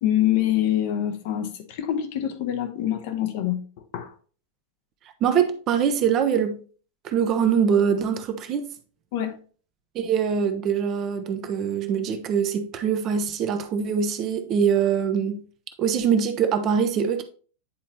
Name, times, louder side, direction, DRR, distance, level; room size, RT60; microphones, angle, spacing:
voice 1, 0.0-3.6 3.9-4.1 9.1-9.3 10.0-10.1, left 11 dB, 50° left, 0.9 m, -25 dB
voice 2, 5.2-6.6 7.0-8.7 9.9-15.4 15.8-17.2, right 7 dB, 35° right, 0.8 m, -23 dB
9.5 x 4.2 x 2.8 m
figure-of-eight pair, 90°, 0 cm